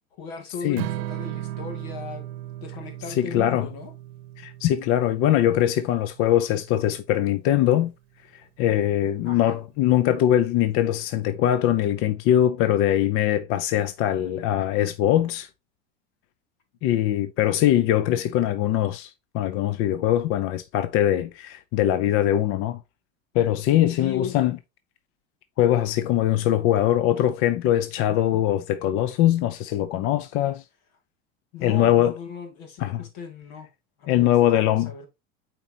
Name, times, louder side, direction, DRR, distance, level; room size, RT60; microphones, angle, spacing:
voice 1, 0.2-2.3 2.6-3.9 9.2-9.6 24.0-24.4 31.5-33.7 34.0-35.1, left 7 dB, 80° left, 2.5 m, -37 dB
Strum, 0.8-7.0, right 14 dB, 85° right, 0.8 m, -37 dB
voice 2, 3.1-3.7 4.4-7.9 8.3-15.5 16.8-22.8 23.3-24.6 25.6-30.6 31.6-32.1 32.8-33.0 34.1-34.9, left 12 dB, 45° left, 0.6 m, -22 dB
8.8 x 4.5 x 2.9 m
supercardioid pair, 145°, 31 cm